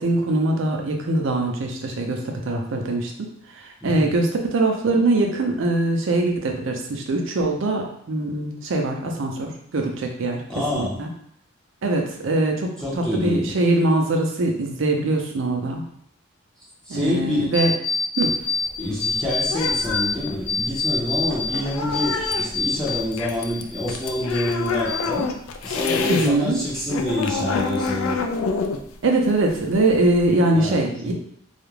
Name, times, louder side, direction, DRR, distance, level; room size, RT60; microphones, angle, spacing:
voice 1, 0.0-3.3 3.6-10.4 10.7-11.1 11.8-12.7 13.2-15.8 16.9-17.7 18.2-18.3 26.1-26.6 29.0-31.1, right 2 dB, 65° right, 2 dB, 0.5 m, -22 dB
voice 2, 3.8-4.1 10.5-11.0 12.8-13.5 16.9-17.5 18.8-25.3 25.6-28.2 30.5-30.8 31.0-31.1, left 1 dB, 5° left, -7 dB, 0.5 m, -27 dB
sound 1, 17.5-18.7 19.0-20.1 20.5-23.1 23.4-24.5 24.9-25.5, left 4 dB, 55° left, 0.7 m, -26 dB
sound 2, 18.2-26.3 26.6-30.4, left 4 dB, 75° left, 0.3 m, -28 dB
2.4 x 2.0 x 3.1 m, 0.67 s
head